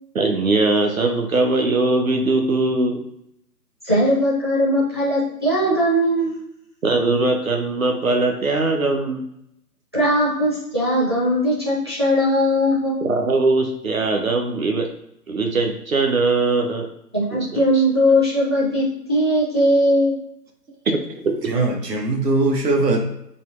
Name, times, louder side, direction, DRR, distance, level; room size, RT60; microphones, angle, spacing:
voice 1, 0.1-3.0 6.8-9.2 13.0-14.9 15.3-16.9 17.5-17.8 20.9-21.0 21.2-21.5, right 3 dB, 55° right, 3 dB, 0.8 m, -20 dB
voice 2, 3.8-6.3 9.9-13.0 17.1-20.1, equal, 15° right, -7 dB, 0.7 m, -19 dB
voice 3, 21.5-23.0, right 2 dB, 70° right, 2 dB, 1.2 m, -20 dB
4.1 x 2.9 x 3.6 m, 0.77 s
figure-of-eight pair, 160°, 50 cm